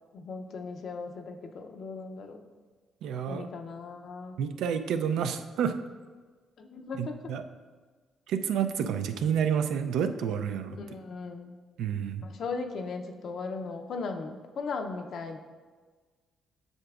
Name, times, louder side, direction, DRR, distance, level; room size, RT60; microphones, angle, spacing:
voice 1, 0.1-2.4 3.3-4.4 6.6-7.2 10.8-11.5 12.2-15.4, left 4 dB, 60° left, 5 dB, 0.6 m, -37 dB
voice 2, 3.0-3.5 4.4-5.7 7.0-7.4 8.3-10.8 11.8-12.3, right 8 dB, 85° right, 8 dB, 0.4 m, -29 dB
7.9 x 5.8 x 2.4 m, 1.4 s
cardioid pair, 90°, 0 cm